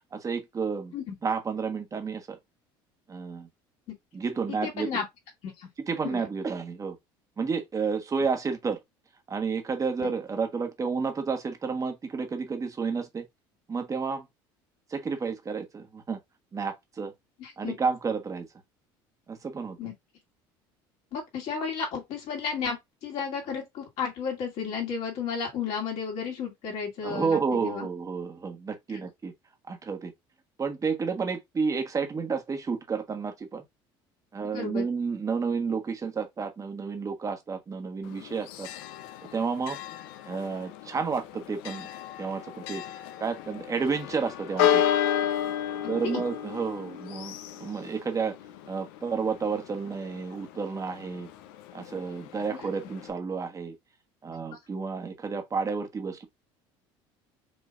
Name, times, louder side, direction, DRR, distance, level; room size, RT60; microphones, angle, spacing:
voice 1, 0.1-0.9 1.2-2.4 3.1-3.5 4.1-4.9 5.8-7.0 7.4-8.8 9.3-13.2 13.7-14.3 14.9-16.2 16.5-17.1 17.6-18.5 19.3-19.8 27.0-29.3 29.7-30.1 30.6-33.6 34.3-38.7 39.3-39.8 40.2-41.9 42.2-42.8 43.2-44.8 45.9-48.3 48.6-51.3 51.7-53.7 54.2-56.3, right 5 dB, 30° right, 1.3 m, -31 dB
voice 2, 4.5-5.0 5.4-5.7 6.0-6.2 10.0-10.1 17.4-17.7 19.8-19.9 21.1-27.9 34.5-34.9 45.8-46.2 52.5-52.7, left 6 dB, 65° left, 2.5 m, -33 dB
Church bell, 38.0-53.1, left 10 dB, 80° left, 0.6 m, -33 dB
5.3 x 3.2 x 2.5 m
supercardioid pair, 85°, 12 cm